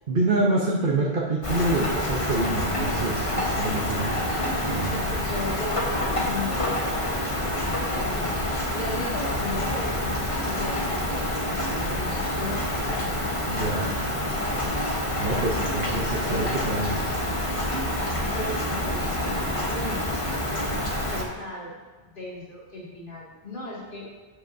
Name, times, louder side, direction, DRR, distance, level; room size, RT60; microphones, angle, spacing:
voice 1, 0.1-4.3 4.7-5.2 13.4-14.0 15.2-17.1, right 2 dB, 50° right, -4 dB, 1.0 m, -27 dB
Rain, 1.4-21.2, left 1 dB, 30° left, 1.1 m, -27 dB
voice 2, 3.9-4.6 5.1-8.4 8.7-13.2 16.2-16.6 18.3-20.0 20.5-20.9 21.1-21.7 22.0-24.1, left 2 dB, 45° left, -6 dB, 2.4 m, -36 dB
11.5 x 8.2 x 2.6 m, 1.4 s
omnidirectional pair, 1.2 m